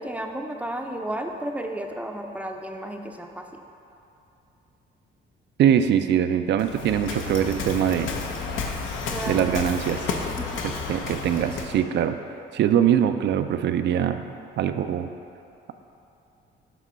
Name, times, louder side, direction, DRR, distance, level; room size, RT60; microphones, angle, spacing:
voice 1, 0.0-3.6 9.1-9.5 10.4-10.8, right 1 dB, 5° right, 3 dB, 0.5 m, -33 dB
voice 2, 5.6-8.1 9.2-10.1 10.9-12.2 12.5-14.2 14.6-15.1, right 9 dB, 65° right, 9 dB, 0.4 m, -22 dB
Waves surf, 6.6-11.8, left 4 dB, 80° left, 0.7 m, -31 dB
7.5 x 3.0 x 5.5 m, 2.8 s
cardioid pair, 90°, 20 cm